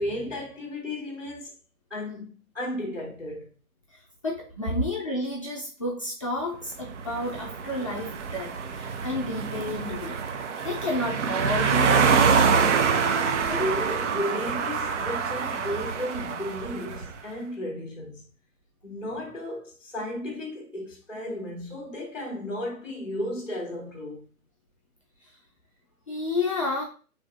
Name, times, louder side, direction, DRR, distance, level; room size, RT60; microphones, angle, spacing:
voice 1, 0.0-1.5 1.9-3.5 13.3-18.2 18.8-24.2, left 1 dB, 5° right, 0.8 m, -34 dB
voice 2, 4.2-10.2 10.6-12.3 26.1-26.8, left 2 dB, 25° left, 0.5 m, -31 dB
sound 1, 6.8-17.1, right 6 dB, 55° right, 0.5 m, -26 dB
4.1 x 3.1 x 2.5 m
figure-of-eight pair, 135°, 45 cm